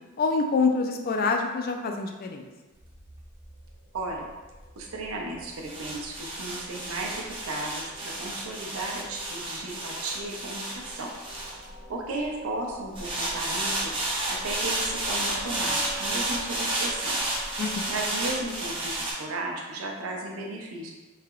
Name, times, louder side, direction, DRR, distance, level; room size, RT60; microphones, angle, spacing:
voice 1, 0.2-2.5 17.6-17.8, left 4 dB, 45° left, 3 dB, 0.3 m, -26 dB
sound 1, 2.8-12.3 13.0-19.1, right 1 dB, 25° right, 0.6 m, -32 dB
sound 2, 3.8-19.0, equal, 75° left, 0.8 m, -47 dB
voice 2, 3.9-4.3 4.8-11.1 11.9-13.9 14.3-17.2 17.9-20.9, right 2 dB, 85° right, 0 dB, 0.6 m, -35 dB
3.2 x 2.8 x 2.4 m, 1.2 s
head